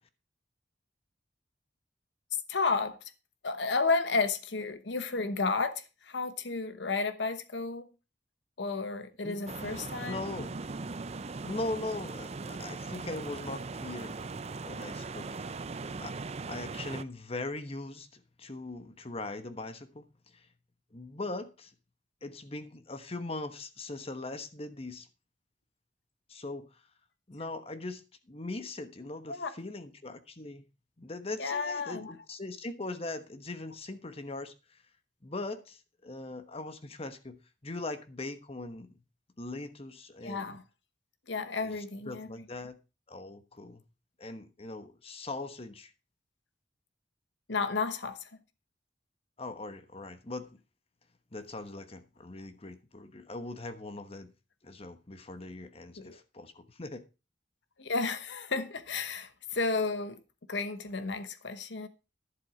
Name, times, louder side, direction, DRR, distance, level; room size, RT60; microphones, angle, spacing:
voice 1, 2.5-3.0 3.4-7.9 8.6-10.2 29.3-29.5 31.4-32.1 40.2-40.6 41.3-42.3 47.5-48.3 56.0-56.2 57.8-60.2 60.5-61.9, left 4 dB, 85° left, 1.0 m, -32 dB
voice 2, 9.2-9.5 10.0-10.5 11.4-14.2 14.4-15.3 15.6-16.1 16.5-20.1 20.3-20.5 20.9-21.7 22.2-25.1 26.3-26.7 27.3-30.6 31.0-34.5 35.2-37.4 37.6-39.0 39.4-40.6 41.6-41.7 42.1-42.7 43.1-43.8 44.2-45.9 49.4-50.5 51.3-54.3 54.6-57.0, left 2 dB, 35° left, 1.2 m, -40 dB
sound 1, 9.5-17.0, right 3 dB, 35° right, 0.5 m, -39 dB
11.0 x 7.6 x 4.9 m
head